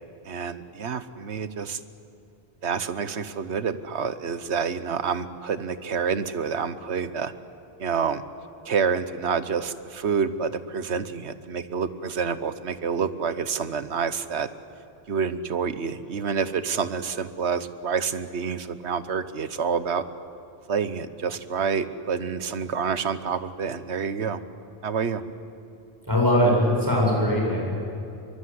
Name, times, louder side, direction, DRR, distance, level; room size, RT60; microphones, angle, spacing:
voice 1, 0.2-1.8 2.6-7.3 7.8-8.2 8.6-14.5 15.1-20.0 20.7-24.4 24.8-25.2, right 6 dB, 80° right, 13 dB, 1.4 m, -28 dB
voice 2, 26.1-27.7, equal, 20° right, -3 dB, 8.1 m, -21 dB
24.0 x 23.5 x 9.6 m, 2.8 s
omnidirectional pair, 1.1 m